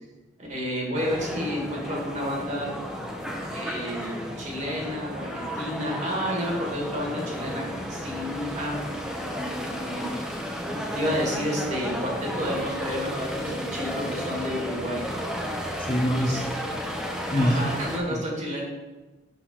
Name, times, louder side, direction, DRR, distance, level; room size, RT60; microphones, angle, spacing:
voice 1, 0.4-2.7 3.5-7.6 7.9-8.8 9.8-10.4 10.9-15.0 16.1-16.4 17.3-18.6, equal, 40° right, -2 dB, 1.9 m, -30 dB
sound 1, 0.9-18.0, equal, 5° right, 0.9 m, -33 dB
voice 2, 15.8-16.5 17.3-17.7 18.1-18.2, equal, 30° left, 2 dB, 0.7 m, -25 dB
6.3 x 4.3 x 6.0 m, 1.1 s
head